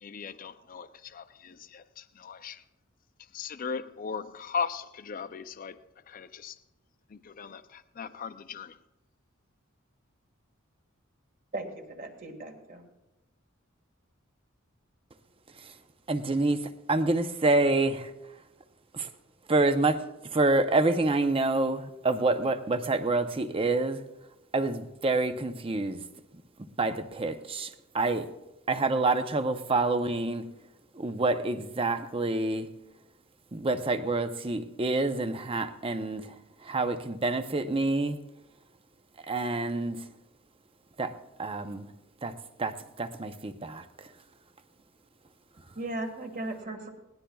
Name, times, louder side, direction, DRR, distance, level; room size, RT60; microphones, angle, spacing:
voice 1, 0.0-2.6 3.3-5.8 6.1-6.6 7.1-8.8, left 6 dB, 40° left, 0.4 m, -38 dB
voice 2, 11.5-12.8 45.7-46.9, right 2 dB, 40° right, 1.8 m, -37 dB
voice 3, 16.1-16.6 16.9-18.1 18.9-19.1 19.5-20.0 20.3-24.0 24.5-26.0 26.8-27.7 27.9-28.3 28.7-30.5 31.0-32.7 33.5-36.3 36.6-38.2 39.3-40.0 41.0-41.1 41.4-41.8 42.2-42.3 42.6-43.8, right 2 dB, 25° right, 0.7 m, -27 dB
20.0 x 17.5 x 2.3 m
head